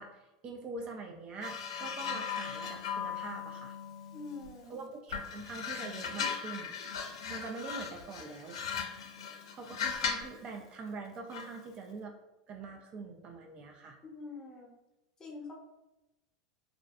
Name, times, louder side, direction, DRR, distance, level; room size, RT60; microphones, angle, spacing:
voice 1, 0.0-3.8 4.7-6.7 7.3-8.6 9.5-12.1 12.5-14.0, right 3 dB, 35° right, 3 dB, 0.3 m, -44 dB
sound 1, 1.4-4.6 5.1-10.4 11.3-11.6, left 6 dB, 80° left, 0.4 m, -38 dB
voice 2, 4.1-4.9 14.1-14.8 15.2-15.5, left 3 dB, 25° left, -1 dB, 0.7 m, -45 dB
2.4 x 2.1 x 2.5 m, 0.98 s
hypercardioid pair, 100°, 3 cm